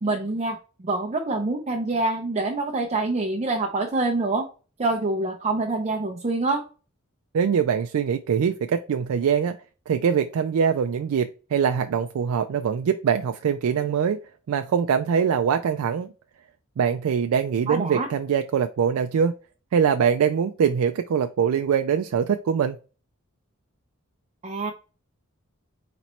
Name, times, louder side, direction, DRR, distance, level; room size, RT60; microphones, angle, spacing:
voice 1, 0.0-4.5 4.8-6.6 17.7-18.1 24.4-24.7, right 2 dB, 30° right, 3 dB, 0.6 m, -26 dB
voice 2, 7.3-9.6 9.9-14.2 14.5-16.1 16.8-19.3 19.7-22.8, right 7 dB, 90° right, 7 dB, 0.3 m, -23 dB
4.2 x 3.0 x 4.2 m, 0.35 s
head